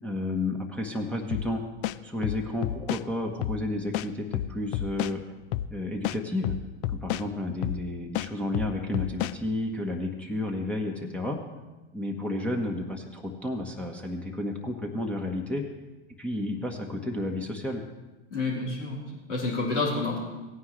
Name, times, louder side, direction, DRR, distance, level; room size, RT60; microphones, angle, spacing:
voice 1, 0.0-1.6 2.0-5.2 5.7-6.5 6.9-11.4 11.9-15.6 16.2-17.8, left 1 dB, 5° left, -2 dB, 1.2 m, -31 dB
sound 1, 1.3-1.5 1.8-3.0 3.4-3.6 3.9-5.1 5.5-5.7 6.0-7.3 7.6-7.8 8.1-9.4, left 13 dB, 50° left, 0.5 m, -30 dB
voice 2, 18.3-20.2, left 3 dB, 80° left, -4 dB, 3.8 m, -29 dB
16.5 x 9.4 x 3.2 m, 1.1 s
hypercardioid pair, 90°, 35 cm